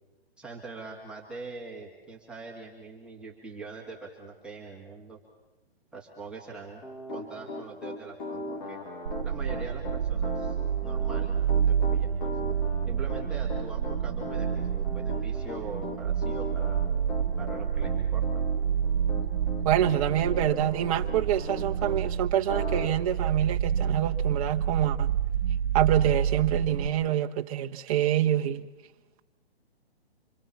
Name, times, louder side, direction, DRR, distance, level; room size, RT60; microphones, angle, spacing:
voice 1, 0.4-5.2 5.9-6.8 7.1-8.8 9.2-12.3 12.9-16.8 17.4-18.5, right 4 dB, 5° right, 2.7 m, -43 dB
Piano, 6.8-22.0 22.5-22.9, left 2 dB, 40° left, 4.0 m, -38 dB
sound 1, 9.1-26.9, right 8 dB, 75° right, 0.9 m, -28 dB
voice 2, 19.6-25.1 25.7-28.6, right 11 dB, 35° right, 1.1 m, -26 dB
26.5 x 22.5 x 7.1 m
hypercardioid pair, 145°, 32 cm